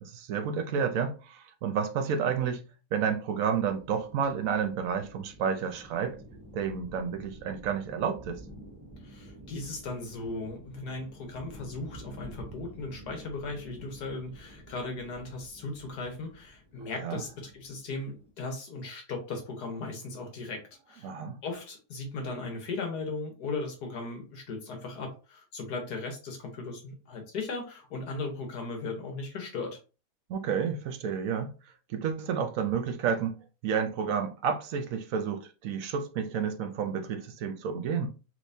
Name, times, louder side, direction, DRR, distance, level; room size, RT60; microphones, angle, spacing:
voice 1, 0.0-2.6 2.9-6.2 6.5-8.4 17.0-17.2 21.0-21.4 30.3-31.5 31.9-38.1, right 7 dB, 70° right, 0.9 m, -30 dB
sound 1, 3.5-18.3, right 1 dB, 15° right, 0.7 m, -50 dB
voice 2, 9.0-20.6 20.9-21.1 21.4-29.8, left 3 dB, 85° left, 1.7 m, -37 dB
3.4 x 3.3 x 2.6 m
omnidirectional pair, 1.6 m